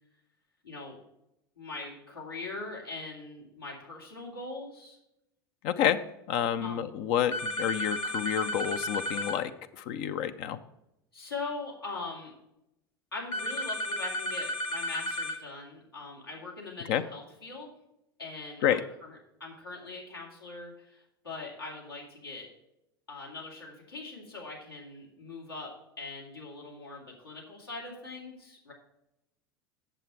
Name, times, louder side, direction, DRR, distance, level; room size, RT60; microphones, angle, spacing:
voice 1, 0.6-1.0 1.6-5.0 6.6-6.8 11.1-12.3 13.1-17.7 18.2-22.5 23.1-28.7, left 3 dB, 85° left, -3 dB, 2.6 m, -41 dB
voice 2, 5.6-6.0 6.3-9.5 9.8-10.6 16.9-17.0 18.6-18.8, left 10 dB, 50° left, 10 dB, 0.6 m, -28 dB
sound 1, 7.3-9.4 13.3-15.4, left 1 dB, 35° left, 1.1 m, -33 dB
7.8 x 7.3 x 4.7 m, 0.85 s
figure-of-eight pair, 75°, 12 cm